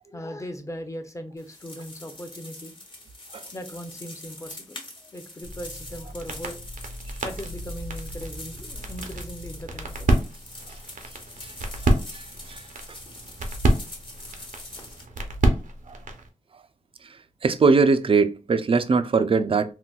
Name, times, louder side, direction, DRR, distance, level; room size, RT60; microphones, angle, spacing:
voice 1, 0.1-2.7 3.5-6.6 7.2-10.1, equal, 25° left, 0.7 m, -38 dB
sound 1, 1.4-15.0, left 2 dB, 40° left, 1.0 m, -44 dB
sound 2, 5.4-16.3, right 1 dB, 80° right, 0.6 m, -29 dB
voice 2, 12.1-12.6 17.4-19.7, right 4 dB, 45° right, 0.4 m, -21 dB
3.9 x 2.2 x 2.3 m
wide cardioid pair, 65°, 13 cm